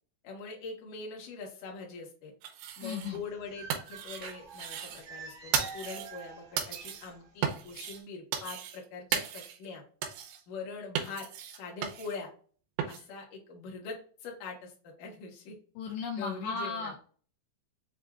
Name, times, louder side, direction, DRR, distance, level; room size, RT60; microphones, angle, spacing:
voice 1, 0.2-2.3 2.8-9.8 10.5-11.3 11.5-12.3 12.8-15.6 16.2-16.9, left 4 dB, 60° left, -1 dB, 2.3 m, -43 dB
sound 1, 2.4-3.2 3.5-5.1 5.5-6.2 6.6-7.1 7.4-8.0 8.3-8.9 9.1-9.7 10.0-10.4 11.0-12.2 12.8-13.0, right 8 dB, 80° right, 3.0 m, -36 dB
voice 2, 2.8-3.2 15.8-17.0, left 5 dB, 80° left, 0 dB, 2.2 m, -35 dB
sound 2, 3.0-7.5 7.7-7.9, right 5 dB, 65° right, 1.5 m, -48 dB
7.4 x 2.7 x 2.3 m, 0.42 s
omnidirectional pair, 5.2 m